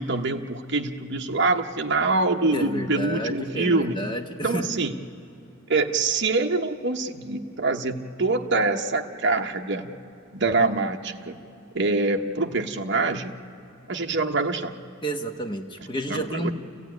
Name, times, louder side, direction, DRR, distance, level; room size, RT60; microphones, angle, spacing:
voice 1, 0.0-4.0 4.4-4.9 5.7-9.9 10.3-11.4 11.7-13.3 13.9-14.7 16.1-16.5, right 3 dB, 55° right, 3 dB, 1.0 m, -25 dB
voice 2, 2.5-4.7 15.0-16.5, right 1 dB, 20° left, 4 dB, 1.1 m, -30 dB
28.0 x 15.0 x 9.3 m, 2.7 s
head